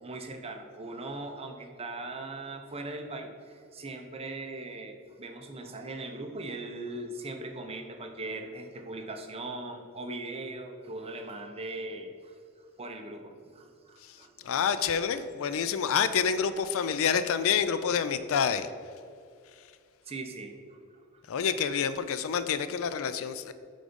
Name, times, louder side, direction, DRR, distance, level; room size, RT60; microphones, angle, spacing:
voice 1, 0.0-12.4 12.8-14.6 20.1-21.0, right 2 dB, 25° right, 4 dB, 0.7 m, -40 dB
voice 2, 14.4-18.7 21.3-23.5, left 7 dB, 65° left, 12 dB, 0.4 m, -28 dB
8.2 x 3.9 x 5.2 m, 2.3 s
head